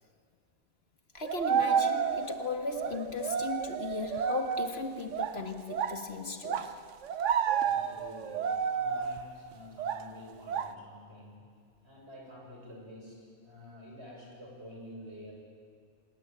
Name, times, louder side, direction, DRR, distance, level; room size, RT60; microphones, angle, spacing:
voice 1, 1.1-6.7, left 3 dB, 60° left, 5 dB, 1.9 m, -37 dB
sound 1, 1.2-2.4 2.7-6.1 6.4-9.4 9.8-10.2 10.5-10.7, right 7 dB, 80° right, 1.2 m, -31 dB
voice 2, 7.6-11.4 11.8-15.3, left 1 dB, 60° right, -2 dB, 7.3 m, -49 dB
27.0 x 20.5 x 9.4 m, 2.2 s
omnidirectional pair, 1.2 m